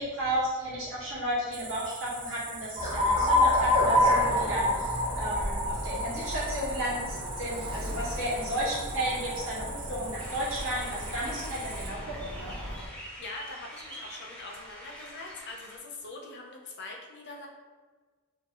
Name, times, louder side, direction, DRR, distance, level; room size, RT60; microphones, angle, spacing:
voice 1, 0.0-12.5, equal, 60° right, -7 dB, 1.4 m, -33 dB
Cricket, 1.5-11.9, right 4 dB, 40° right, 0.6 m, -43 dB
Alarm, 2.8-12.9, left 1 dB, 20° right, 0.9 m, -29 dB
sound 1, 10.2-15.8, equal, 5° left, 0.5 m, -46 dB
voice 2, 12.9-17.5, left 3 dB, 50° left, 0 dB, 0.5 m, -43 dB
2.9 x 2.6 x 3.7 m, 1.4 s
head